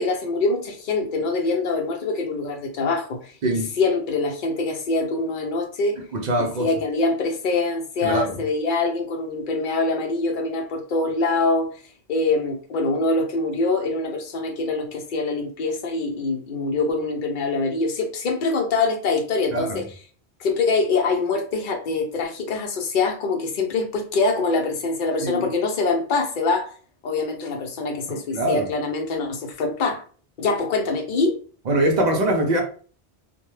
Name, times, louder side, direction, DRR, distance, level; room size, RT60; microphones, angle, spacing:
voice 1, 0.0-3.3 3.8-6.0 6.4-11.7 12.1-19.9 20.4-26.7 27.0-30.0 30.4-31.4, left 3 dB, 55° left, 0.7 m, -24 dB
voice 2, 6.1-6.7 8.0-8.3 19.5-19.7 25.2-25.5 28.3-28.6 31.7-32.6, right 1 dB, 55° right, 0.5 m, -22 dB
2.1 x 2.1 x 3.1 m
omnidirectional pair, 1.1 m